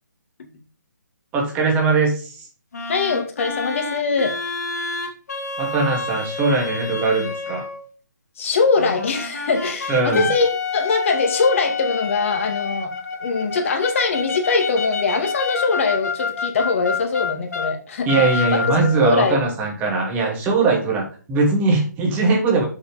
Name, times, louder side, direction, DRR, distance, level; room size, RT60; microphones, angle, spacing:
voice 1, 1.3-2.3 5.6-7.6 9.9-10.3 18.1-22.7, right 3 dB, 15° right, -1 dB, 2.5 m, -20 dB
sound 1, 2.7-7.9 8.8-17.7 18.1-19.1, left 4 dB, 60° left, 2.3 m, -28 dB
voice 2, 2.9-4.4 8.4-12.9 13.2-19.4, left 4 dB, 45° left, 4 dB, 2.2 m, -22 dB
6.9 x 6.6 x 5.2 m, 0.39 s
figure-of-eight pair, 145°, 10 cm